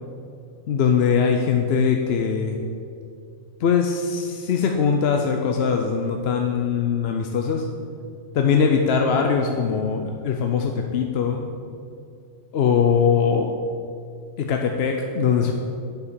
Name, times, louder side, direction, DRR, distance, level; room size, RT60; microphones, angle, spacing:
voice 1, 0.7-2.6 3.6-7.7 8.3-11.6 12.5-13.5 14.4-15.5, left 6 dB, 60° left, 3 dB, 0.8 m, -21 dB
8.0 x 4.9 x 6.8 m, 2.4 s
omnidirectional pair, 1.3 m